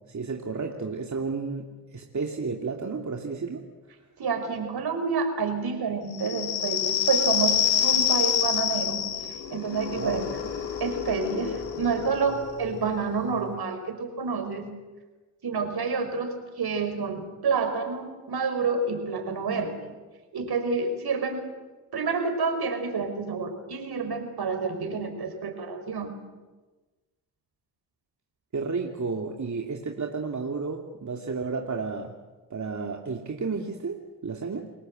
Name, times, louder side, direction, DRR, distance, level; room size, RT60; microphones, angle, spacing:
voice 1, 0.1-3.6 9.9-10.2 28.5-32.1 32.5-34.7, right 4 dB, 40° right, 1 dB, 2.9 m, -32 dB
voice 2, 4.2-9.1 9.5-10.3 10.8-14.7 15.4-19.8 20.3-21.5 21.9-26.1, right 4 dB, 60° right, 7 dB, 5.4 m, -28 dB
sound 1, 6.1-13.4, left 9 dB, 85° left, 2.5 m, -27 dB
29.0 x 20.5 x 8.0 m, 1.2 s
supercardioid pair, 45°, 43 cm